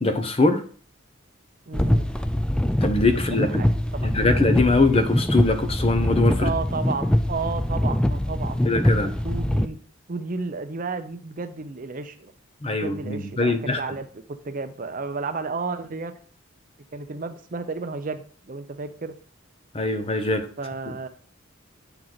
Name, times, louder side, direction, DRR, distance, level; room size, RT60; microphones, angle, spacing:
voice 1, 0.0-0.6 2.8-3.6 4.0-6.5 8.7-9.1 12.6-13.8 19.7-20.5, left 2 dB, 30° left, 8 dB, 0.8 m, -22 dB
sound 1, 1.7-9.7, left 1 dB, 5° left, 0.3 m, -23 dB
voice 2, 1.7-2.1 3.4-3.7 4.0-4.1 6.4-8.6 8.9-9.8 10.1-12.3 12.6-14.1 14.4-16.1 16.9-19.1 20.6-21.1, right 4 dB, 40° right, 9 dB, 0.6 m, -32 dB
8.8 x 4.6 x 4.0 m, 0.43 s
head